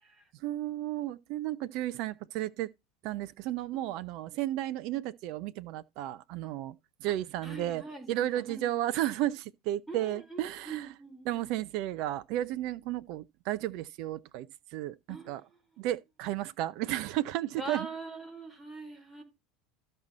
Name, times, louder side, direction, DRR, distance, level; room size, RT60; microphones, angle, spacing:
voice 1, 0.4-2.7 3.0-6.7 7.0-7.8 8.1-10.9 11.3-14.5 14.7-15.4 15.8-17.9, right 14 dB, 55° right, 0.5 m, -33 dB
voice 2, 7.4-8.6 9.9-11.5 15.1-15.6 17.6-19.2, right 2 dB, 5° left, 4.4 m, -43 dB
13.0 x 5.5 x 4.0 m
figure-of-eight pair, 75°, 0 cm